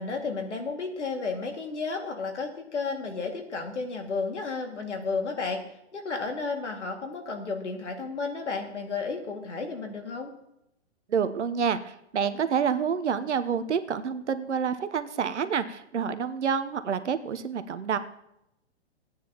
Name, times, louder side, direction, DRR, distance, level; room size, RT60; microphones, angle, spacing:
voice 1, 0.0-5.6 5.9-10.3, left 4 dB, 90° left, 4 dB, 2.3 m, -32 dB
voice 2, 11.1-18.0, right 7 dB, 90° right, 11 dB, 0.9 m, -28 dB
17.0 x 9.3 x 3.0 m, 0.82 s
hypercardioid pair, 135°, 34 cm